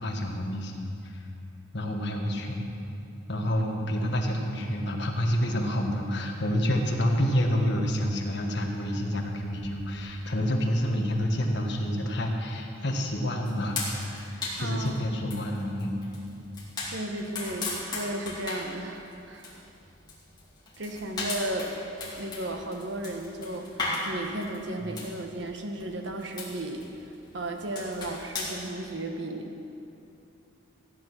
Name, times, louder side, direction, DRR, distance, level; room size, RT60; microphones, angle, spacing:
voice 1, 0.0-1.3 1.7-2.7 3.3-16.0, equal, 55° left, 1 dB, 1.6 m, -28 dB
sound 1, 13.5-28.7, left 3 dB, 20° left, 2.7 m, -37 dB
voice 2, 14.6-15.1 16.9-19.7 20.8-21.7 22.2-26.9 27.3-29.5, right 1 dB, 60° right, 4 dB, 1.2 m, -35 dB
15.5 x 9.6 x 6.1 m, 2.8 s
head